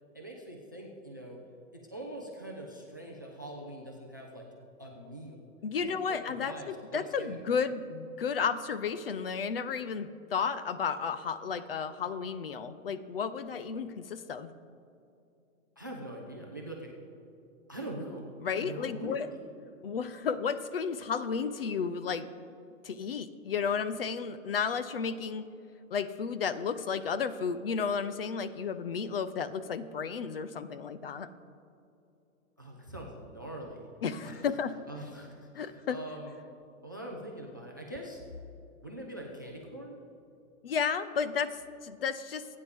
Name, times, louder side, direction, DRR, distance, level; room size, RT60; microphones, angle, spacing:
voice 1, 0.1-1.4 1.9-4.5 4.8-5.4 5.8-7.4 15.8-16.9 17.7-18.3 18.6-19.2 32.6-33.9 34.2-34.4 34.9-36.3 36.8-38.2 38.8-40.0, right 1 dB, 15° right, 1 dB, 0.4 m, -43 dB
voice 2, 5.6-14.5 18.4-19.3 19.8-22.3 22.8-25.5 25.9-31.3 34.0-34.8 35.5-36.0 40.6-42.5, left 6 dB, 45° left, 13 dB, 0.5 m, -33 dB
27.0 x 9.4 x 3.5 m, 2.6 s
hypercardioid pair, 165°, 42 cm